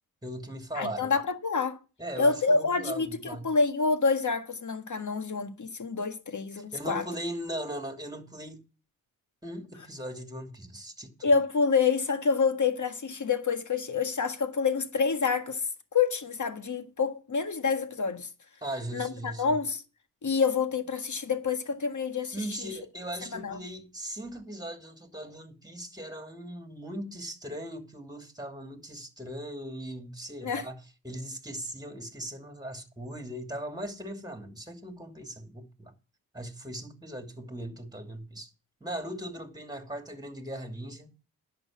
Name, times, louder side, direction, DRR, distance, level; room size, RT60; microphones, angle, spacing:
voice 1, 0.2-1.1 2.0-3.5 6.7-8.7 9.4-11.3 18.6-19.6 22.3-30.8 31.0-35.9 36.3-38.5 38.8-41.1, right 1 dB, 10° right, 2.7 m, -39 dB
voice 2, 0.7-1.8 2.2-7.0 11.2-15.6 15.9-18.3 18.9-19.8 20.2-22.7 23.2-23.6 30.4-30.6, left 5 dB, 50° left, 1.7 m, -27 dB
10.5 x 6.7 x 7.3 m
cardioid pair, 50°, 37 cm